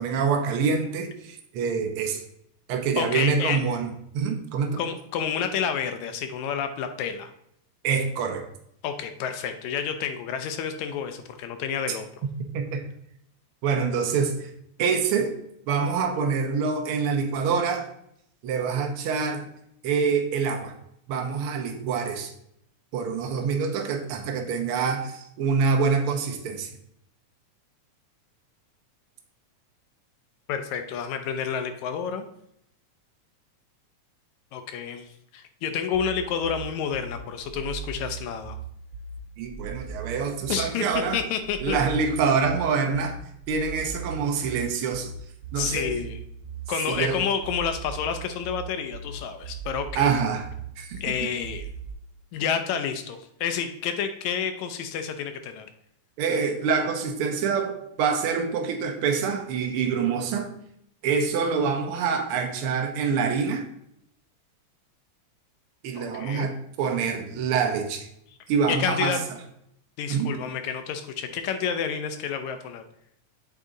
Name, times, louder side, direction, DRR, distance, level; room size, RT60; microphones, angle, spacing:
voice 1, 0.0-2.2 2.7-4.8 7.8-8.4 11.9-12.0 12.5-12.8 13.6-14.5 14.8-15.3 15.7-17.9 18.4-19.5 19.8-20.7 21.1-22.3 22.9-26.7 39.4-41.2 41.6-43.2 43.5-45.1 45.5-45.9 46.9-47.2 49.9-50.5 50.8-51.3 56.2-60.5 61.0-63.7 65.8-68.1 68.5-69.2 70.1-70.4, right 5 dB, 70° right, 4 dB, 1.3 m, -26 dB
voice 2, 3.0-3.6 4.8-7.3 8.8-12.1 30.5-32.3 34.5-35.1 35.3-38.6 40.5-40.9 41.1-41.8 45.6-46.2 46.7-50.1 51.0-51.7 52.3-55.7 66.0-66.5 68.7-69.2 70.0-72.8, left 7 dB, 80° left, 7 dB, 1.9 m, -29 dB
sound 1, 35.9-51.9, right 6 dB, 55° right, 1.6 m, -38 dB
8.1 x 4.0 x 3.7 m, 0.74 s
omnidirectional pair, 3.4 m